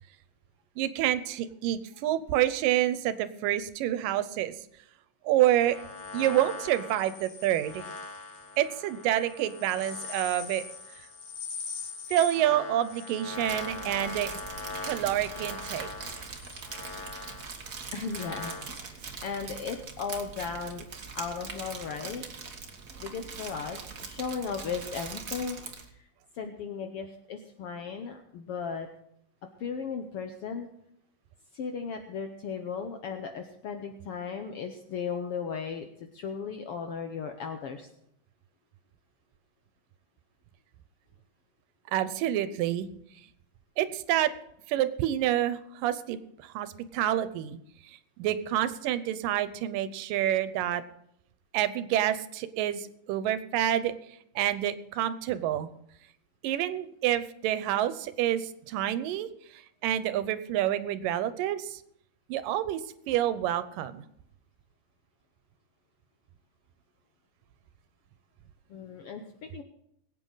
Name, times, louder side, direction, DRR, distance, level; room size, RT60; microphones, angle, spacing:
voice 1, 0.8-4.5 5.2-5.8 6.1-7.9 8.6-10.6 12.1-14.3 14.8-15.9 41.9-42.9 43.8-44.3 44.7-47.6 47.9-50.8 51.5-54.0 54.4-55.7 56.4-59.3 59.5-61.8 62.3-62.8 63.1-64.1, right 12 dB, 85° right, 13 dB, 2.4 m, -28 dB
sound 1, 5.6-18.8, left 4 dB, 65° left, 3.4 m, -41 dB
Crumpling crinkling, 13.3-25.9, right 5 dB, 65° right, 0.8 m, -42 dB
voice 2, 17.9-20.8 21.1-22.2 23.0-25.6 26.3-28.9 29.6-30.7 31.5-35.9 36.1-37.9 68.7-69.6, left 6 dB, 90° left, 5 dB, 1.2 m, -36 dB
22.0 x 8.8 x 3.9 m, 0.73 s
omnidirectional pair, 3.8 m